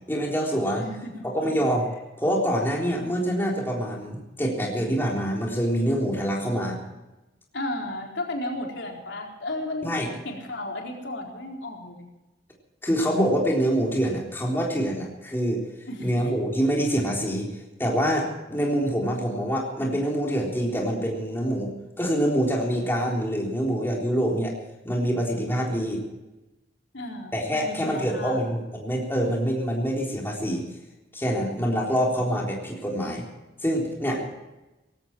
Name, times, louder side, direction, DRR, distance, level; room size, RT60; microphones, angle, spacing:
voice 1, 0.1-0.8 1.2-1.9 2.2-6.8 9.8-10.1 12.8-15.6 16.0-17.5 17.8-24.5 24.8-26.0 27.3-30.6 31.1-33.3 33.6-34.3, equal, 10° left, -2 dB, 3.8 m, -25 dB
voice 2, 0.7-1.3 7.5-9.9 10.2-12.1 15.9-16.4 26.9-28.4, left 1 dB, 90° left, 0 dB, 4.2 m, -34 dB
18.5 x 16.5 x 4.6 m, 1.0 s
head